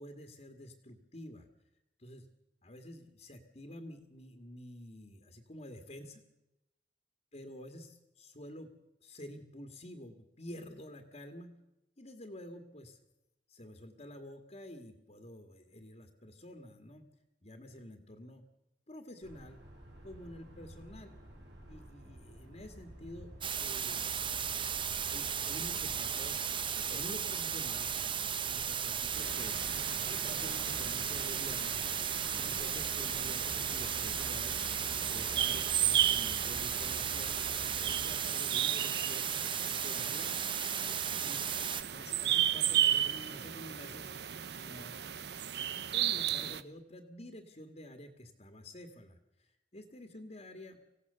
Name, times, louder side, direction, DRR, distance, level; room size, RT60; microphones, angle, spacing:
voice 1, 0.0-1.5 2.0-2.3 2.6-6.2 7.3-8.7 9.0-11.5 12.0-13.0 13.5-17.1 17.4-18.4 18.9-19.6 20.0-21.2 21.7-23.3 23.6-24.1 25.1-26.4 26.8-27.9 28.4-29.6 30.1-31.8 32.3-34.6 35.0-37.4 37.8-39.4 39.8-40.3 41.2-41.4 41.9-44.1 44.5-45.0 45.9-50.8, left 1 dB, 40° left, 5 dB, 1.8 m, -49 dB
sound 1, 19.2-38.1, right 1 dB, 80° right, 5.4 m, -51 dB
sound 2, 23.4-41.8, right 8 dB, 30° right, 0.8 m, -35 dB
sound 3, 29.1-46.6, right 11 dB, 65° right, 0.9 m, -35 dB
25.5 x 16.5 x 6.8 m, 0.91 s
head